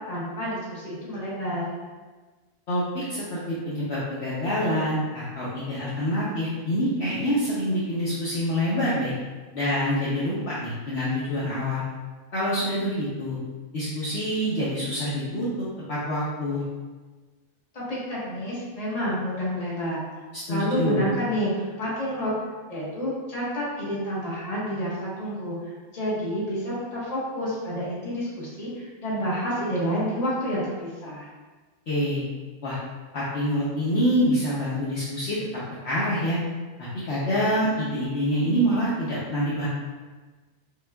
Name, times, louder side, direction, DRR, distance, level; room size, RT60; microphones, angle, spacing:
voice 1, 0.1-1.7 17.7-20.0 20.5-22.3 22.7-25.6 25.9-31.3, equal, 30° left, -8 dB, 1.1 m, -29 dB
voice 2, 2.7-9.1 9.5-11.8 12.3-13.4 13.7-16.6 20.3-21.0 31.9-32.2 32.6-32.8 33.1-35.4 35.8-36.4 36.8-39.7, equal, 55° left, -10 dB, 0.9 m, -26 dB
5.1 x 2.3 x 2.2 m, 1.3 s
omnidirectional pair, 1.5 m